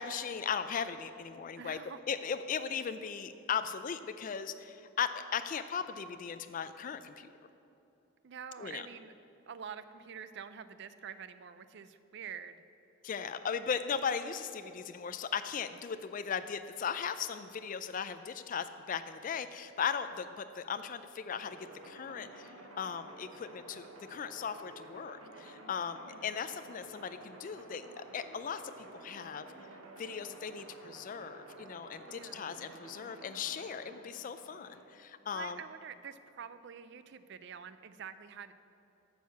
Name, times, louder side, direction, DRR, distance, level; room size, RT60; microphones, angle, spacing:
voice 1, 0.0-1.8 2.1-7.3 8.6-8.8 13.0-21.6 21.8-29.5 30.0-35.6, left 7 dB, 40° left, 10 dB, 0.3 m, -37 dB
voice 2, 1.6-2.0 8.2-9.1 9.5-12.6 32.1-32.5 35.3-38.5, right 7 dB, 50° right, 13 dB, 0.4 m, -46 dB
sound 1, 21.3-35.0, right 2 dB, 80° right, 1.2 m, -52 dB
9.2 x 6.4 x 6.9 m, 2.9 s
head